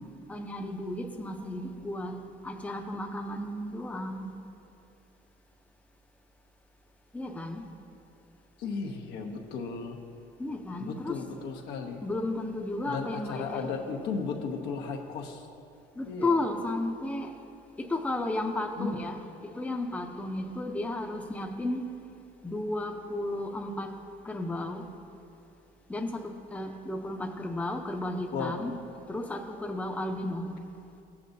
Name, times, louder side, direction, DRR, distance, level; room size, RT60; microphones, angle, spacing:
voice 1, 0.3-2.2 2.4-4.3 7.1-7.6 10.4-11.2 12.0-13.7 16.0-17.3 17.8-19.2 19.5-21.9 22.4-23.9 24.2-24.9 25.9-28.8 29.1-30.5, left 2 dB, 10° left, 3 dB, 0.6 m, -33 dB
voice 2, 8.6-10.0 10.8-12.0 12.8-15.5 16.0-16.4 18.8-19.1 28.3-28.6, left 5 dB, 85° left, 2 dB, 1.0 m, -35 dB
14.5 x 8.4 x 2.7 m, 2.7 s
cardioid pair, 110°, 17 cm